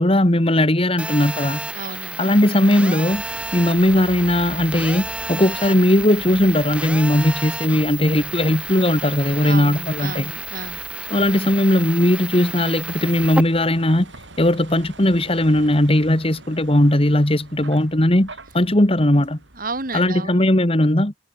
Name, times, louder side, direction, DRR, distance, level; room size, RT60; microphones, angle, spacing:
voice 1, 0.0-1.6 2.2-3.2 3.5-10.3 11.1-14.1 14.4-19.4 19.9-21.1, left 1 dB, 30° left, 2.0 m, -18 dB
Telephone, 1.0-13.4, right 2 dB, 5° right, 3.3 m, -31 dB
voice 2, 1.7-2.3 9.4-10.8 19.6-20.5, right 3 dB, 50° right, 3.5 m, -32 dB
Vehicle, 3.1-20.0, right 2 dB, 80° right, 7.3 m, -44 dB
head